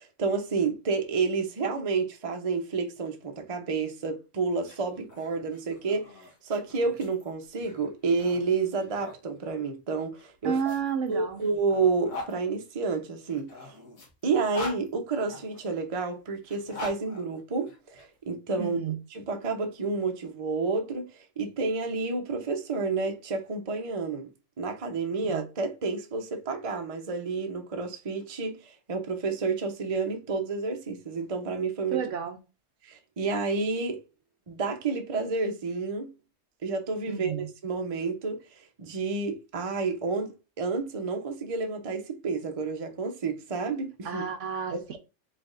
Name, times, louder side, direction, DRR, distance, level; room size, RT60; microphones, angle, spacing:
voice 1, 0.0-6.1 6.4-10.7 11.1-13.7 14.2-18.8 19.1-24.3 24.6-32.0 32.8-34.0 34.5-36.1 36.6-38.4 38.8-40.3 40.6-44.2 44.7-45.0, right 4 dB, 30° right, 0.7 m, -30 dB
sound 1, 4.5-9.2 10.1-12.3 13.3-15.6 16.4-18.1, left 2 dB, 75° left, 1.8 m, -43 dB
voice 2, 10.4-11.4 18.6-19.0 25.2-25.4 31.9-32.4 37.1-37.5 44.0-45.0, right 7 dB, 65° right, 0.9 m, -31 dB
4.6 x 4.0 x 2.5 m
omnidirectional pair, 1.5 m